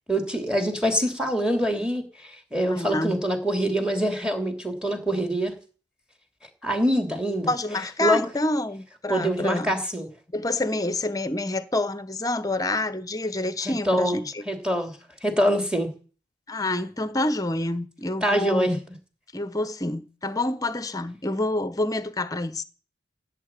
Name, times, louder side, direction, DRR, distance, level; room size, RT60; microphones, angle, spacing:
voice 1, 0.1-5.5 6.6-7.5 8.0-8.2 9.1-10.1 13.6-14.2 14.5-14.9 15.2-15.9 18.2-18.7, equal, 5° right, 2.9 m, -24 dB
voice 2, 2.7-3.2 7.5-9.7 10.3-14.4 16.5-18.8 19.3-22.6, left 2 dB, 20° left, 1.1 m, -27 dB
16.5 x 8.7 x 9.0 m
head